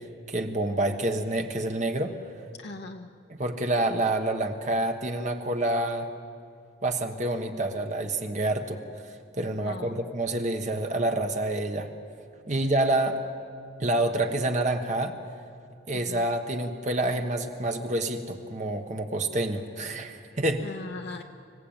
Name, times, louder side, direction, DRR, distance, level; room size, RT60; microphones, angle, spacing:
voice 1, 0.3-2.2 3.3-6.1 6.8-11.9 12.5-13.2 13.8-15.2 15.9-20.7, right 1 dB, 35° right, 5 dB, 1.2 m, -28 dB
voice 2, 2.6-3.1 9.6-10.1 12.5-12.7 15.9-16.2 20.6-21.2, left 2 dB, 55° left, 3 dB, 0.9 m, -40 dB
25.0 x 16.0 x 8.9 m, 2.4 s
head